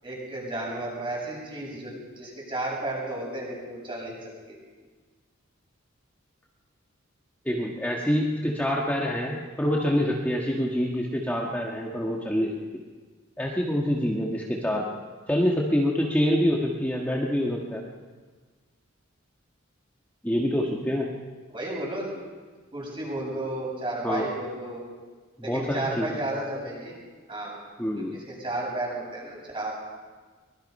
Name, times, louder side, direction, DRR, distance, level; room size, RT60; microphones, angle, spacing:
voice 1, 0.0-4.6 21.5-22.1 22.7-24.8 25.4-26.9 27.3-27.6 28.0-29.7, right 1 dB, 25° right, -3 dB, 7.7 m, -33 dB
voice 2, 7.4-12.8 13.4-14.9 15.3-17.8 20.2-21.1 24.0-24.3 25.4-26.1 27.8-28.2, equal, 10° left, -2 dB, 1.7 m, -26 dB
24.0 x 21.5 x 5.5 m, 1.5 s
head